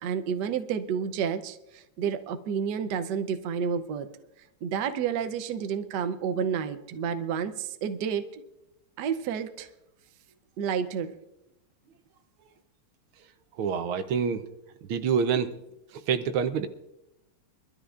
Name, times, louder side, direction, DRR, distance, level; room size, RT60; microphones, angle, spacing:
voice 1, 0.0-4.1 4.6-8.4 9.0-9.7 10.6-11.1, right 7 dB, 65° right, 9 dB, 1.2 m, -30 dB
voice 2, 13.6-14.5 14.9-15.6 15.9-16.7, right 6 dB, 80° right, 10 dB, 1.6 m, -27 dB
23.0 x 13.0 x 2.5 m, 0.87 s
omnidirectional pair, 2.3 m